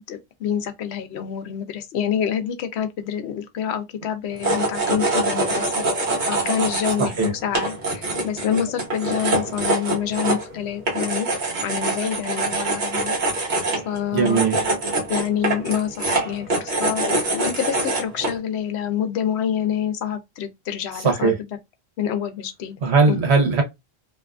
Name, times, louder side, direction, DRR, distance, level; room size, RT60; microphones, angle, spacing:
voice 1, 0.0-5.8 6.3-11.3 11.6-13.2 13.8-14.4 15.1-21.4 22.0-22.8 23.1-23.2, left 9 dB, 80° left, 0.8 m, -27 dB
sound 1, 4.3-18.4, right 2 dB, 50° right, 0.9 m, -24 dB
voice 2, 7.0-7.3 14.1-14.6 21.0-21.4 22.8-23.6, right 4 dB, 75° right, 1.1 m, -19 dB
2.6 x 2.4 x 2.2 m
omnidirectional pair, 1.1 m